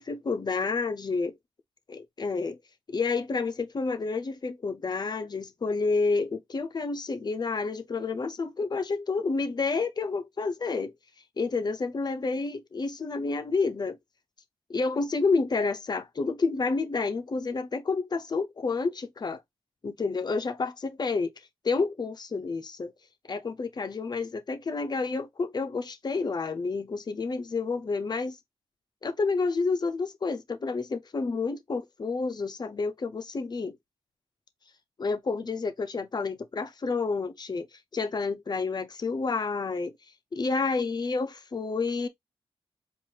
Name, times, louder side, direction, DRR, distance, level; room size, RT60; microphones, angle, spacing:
voice 1, 0.0-1.3 1.9-2.6 2.9-10.9 11.4-14.0 14.7-19.4 19.8-21.3 21.6-22.9 23.3-28.4 29.0-33.8 35.0-39.9 40.3-42.1, left 4 dB, 45° left, 0.7 m, -29 dB
4.7 x 2.6 x 2.8 m
wide cardioid pair, 90°, 10 cm